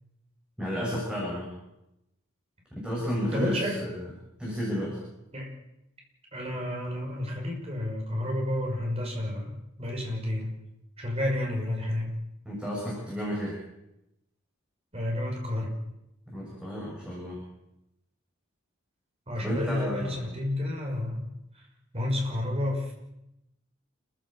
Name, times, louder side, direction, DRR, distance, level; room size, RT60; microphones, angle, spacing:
voice 1, 0.6-1.5 2.8-4.0 4.4-5.0 12.5-13.6 16.3-17.4 19.3-20.2, equal, 5° right, -4 dB, 7.2 m, -32 dB
voice 2, 3.3-3.8 5.3-5.5 6.3-10.5 11.0-12.1 14.9-15.7 19.3-21.3 21.5-21.6 21.9-22.9, left 1 dB, 30° right, 0 dB, 6.2 m, -30 dB
29.0 x 15.5 x 7.6 m, 0.89 s
head